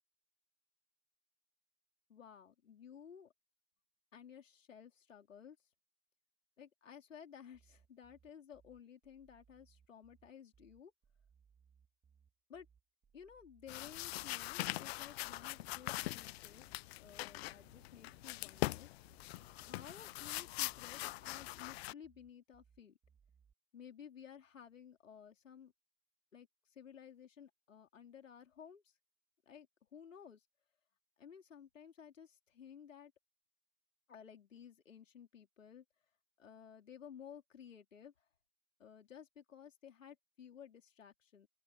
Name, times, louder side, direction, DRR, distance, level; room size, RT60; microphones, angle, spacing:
voice 1, 2.1-3.3 4.1-5.6 6.6-10.9 12.5-12.7 13.1-16.7 17.0-18.9 19.5-23.0 23.7-25.7 26.3-28.8 29.5-29.7 29.9-30.4 31.2-33.1 34.1-35.8 36.4-38.1 38.8-41.5, left 8 dB, 90° left, 4.4 m, -55 dB
sound 1, 7.5-23.5, right 7 dB, 20° right, 4.9 m, -70 dB
sound 2, 13.7-21.9, left 19 dB, 55° left, 0.7 m, -42 dB
open air
hypercardioid pair, 115°, 37 cm